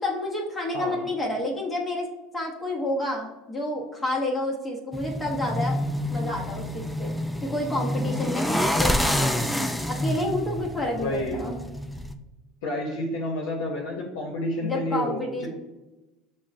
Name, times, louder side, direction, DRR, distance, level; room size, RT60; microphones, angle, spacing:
voice 1, 0.0-2.1 2.3-5.7 6.1-7.1 7.4-9.5 9.9-11.6 14.6-15.5, left 1 dB, 20° left, -1 dB, 0.7 m, -29 dB
voice 2, 0.7-1.0 10.9-11.4 12.6-15.5, left 1 dB, 85° left, -3 dB, 0.6 m, -30 dB
sound 1, 4.9-12.1, equal, ahead, 0.3 m, -28 dB
6.0 x 2.0 x 2.5 m, 1.1 s
supercardioid pair, 90°, 0 cm